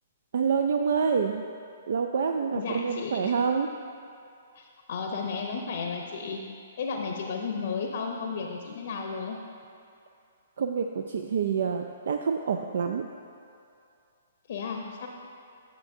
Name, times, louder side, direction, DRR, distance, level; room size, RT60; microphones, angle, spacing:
voice 1, 0.3-1.4 1.9-3.7 10.6-13.1, right 6 dB, 65° right, 5 dB, 0.3 m, -27 dB
voice 2, 2.5-3.3 4.6-6.4 6.8-9.4 14.5-15.1, left 5 dB, 60° left, 2 dB, 0.7 m, -33 dB
9.5 x 7.5 x 2.6 m, 2.5 s
hypercardioid pair, 125°, 0 cm